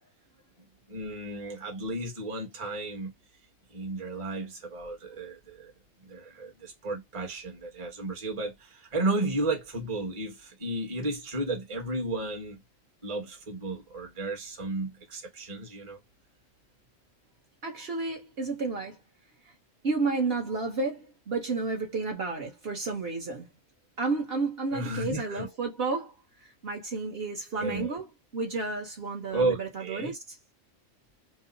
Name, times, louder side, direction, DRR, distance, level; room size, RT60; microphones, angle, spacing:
voice 1, 0.9-3.1 3.7-5.7 6.0-12.6 13.0-16.0 24.7-25.5 27.6-28.0 29.3-30.1, right 2 dB, 25° right, 1.0 m, -33 dB
voice 2, 17.6-19.0 19.4-19.5 19.8-23.5 24.0-26.1 26.4-30.2, right 3 dB, 50° right, 1.2 m, -31 dB
3.0 x 2.0 x 3.7 m
omnidirectional pair, 1.4 m